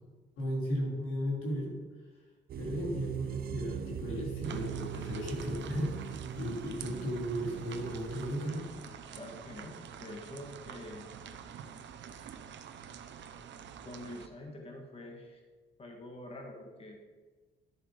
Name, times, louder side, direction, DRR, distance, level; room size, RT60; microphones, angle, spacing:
voice 1, 0.4-1.8 2.6-8.7, equal, 85° left, -2 dB, 3.2 m, -35 dB
sound 1, 2.5-8.5, right 10 dB, 50° right, 0.4 m, -41 dB
sound 2, 4.4-14.3, right 7 dB, 65° right, 0.8 m, -47 dB
voice 2, 9.1-11.1 13.8-15.4 15.8-17.0, left 1 dB, 30° left, 2 dB, 1.8 m, -46 dB
11.0 x 7.0 x 5.1 m, 1.4 s
cardioid pair, 90°, 20 cm